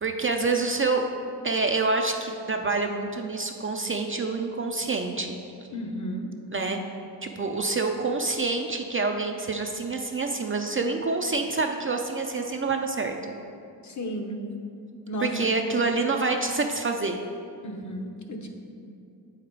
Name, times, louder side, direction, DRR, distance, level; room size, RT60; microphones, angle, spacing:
voice 1, 0.0-1.1 1.4-5.4 6.5-6.8 7.2-13.1 15.2-17.2, right 3 dB, 30° right, 3 dB, 0.4 m, -27 dB
voice 2, 5.7-6.3 13.8-14.4 15.1-15.5 17.6-18.5, equal, 45° left, 2 dB, 0.9 m, -33 dB
7.8 x 5.0 x 4.6 m, 2.5 s
wide cardioid pair, 105°, 42 cm